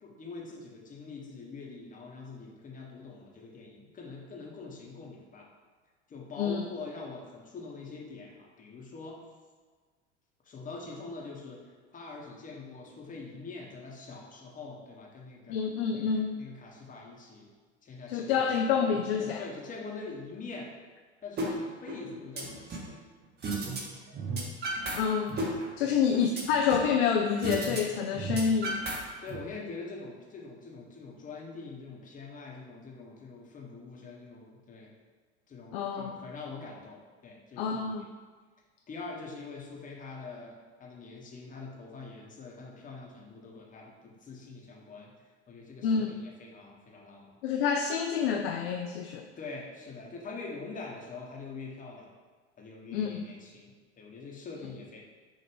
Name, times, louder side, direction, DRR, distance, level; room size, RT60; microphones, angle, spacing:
voice 1, 0.0-5.5 6.1-9.2 10.4-15.6 15.9-17.5 17.8-20.7 21.2-23.0 25.8-26.0 29.2-34.9 35.5-38.0 38.9-45.1 45.5-47.3 49.4-52.1 52.6-55.0, left 3 dB, 25° left, -2 dB, 1.0 m, -44 dB
voice 2, 15.5-16.4 18.1-19.4 24.9-25.4 25.8-29.0 35.7-36.2 37.6-38.0 45.8-46.1 47.4-49.3 52.9-53.3, left 6 dB, 60° left, 3 dB, 0.4 m, -28 dB
sound 1, 21.4-21.5 21.9-22.9 23.4-23.8 24.1-25.0 25.3-26.9 27.4-27.8 28.1-29.4, right 2 dB, 30° right, 0.9 m, -33 dB
6.0 x 2.5 x 3.4 m, 1.5 s
figure-of-eight pair, 75°, 35 cm